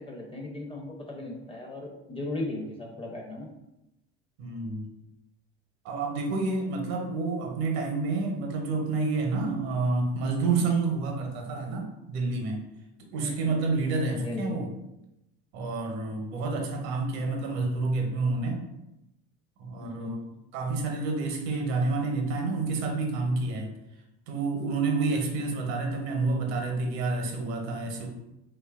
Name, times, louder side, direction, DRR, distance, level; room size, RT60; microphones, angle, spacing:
voice 1, 0.0-3.5 13.2-13.5 14.1-14.6 16.7-16.8 19.8-20.2 27.9-28.1, left 2 dB, 15° left, 0 dB, 0.6 m, -37 dB
voice 2, 4.4-4.9 5.8-12.6 13.1-14.7 15.5-18.6 19.6-20.2 20.5-23.7 24.3-28.1, right 3 dB, 75° right, 2 dB, 0.7 m, -29 dB
2.9 x 2.3 x 2.3 m, 0.90 s
hypercardioid pair, 80°, 33 cm